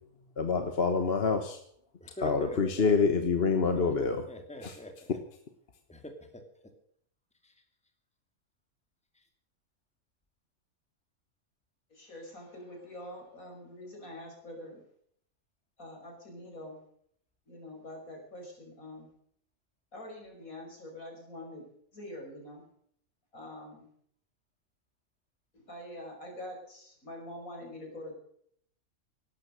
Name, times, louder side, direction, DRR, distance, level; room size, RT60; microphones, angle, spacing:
voice 1, 0.4-1.6 2.2-4.2 4.6-4.8, left 4 dB, 45° left, 7 dB, 1.5 m, -27 dB
voice 2, 2.0-2.6 3.7-3.9 4.3-5.2 5.9-6.4, left 1 dB, 5° left, 5 dB, 2.3 m, -44 dB
voice 3, 11.9-14.8 15.8-16.8 17.5-19.1 19.9-21.7 21.9-22.6 23.3-23.9 25.5-28.1, left 1 dB, 80° left, 1 dB, 6.2 m, -45 dB
17.5 x 12.5 x 6.4 m, 0.64 s
omnidirectional pair, 1.4 m